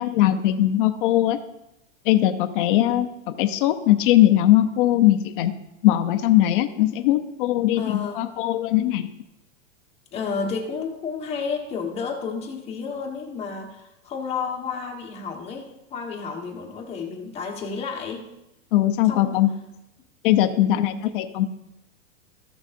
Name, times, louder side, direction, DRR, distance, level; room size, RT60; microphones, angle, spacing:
voice 1, 0.0-1.4 2.0-5.5 5.8-9.1 18.7-19.5 20.2-21.5, left 13 dB, 45° left, 6 dB, 0.7 m, -20 dB
voice 2, 7.8-8.2 10.1-18.3 19.1-19.4 20.7-21.0, left 5 dB, 15° left, 1 dB, 1.2 m, -31 dB
14.5 x 6.3 x 2.6 m, 0.89 s
supercardioid pair, 160°, 39 cm